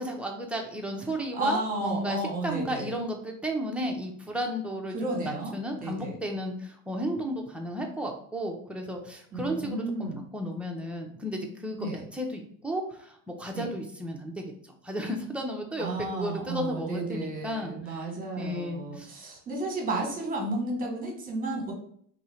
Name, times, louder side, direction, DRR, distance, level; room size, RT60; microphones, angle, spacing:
voice 1, 0.0-18.1 18.4-19.1, equal, 5° right, 1 dB, 0.5 m, -34 dB
voice 2, 1.0-2.9 4.9-5.5 5.8-6.1 9.3-10.2 11.8-12.0 13.5-13.7 15.8-21.7, right 2 dB, 25° right, 1 dB, 1.3 m, -33 dB
2.8 x 2.7 x 4.3 m, 0.62 s
supercardioid pair, 125°, 37 cm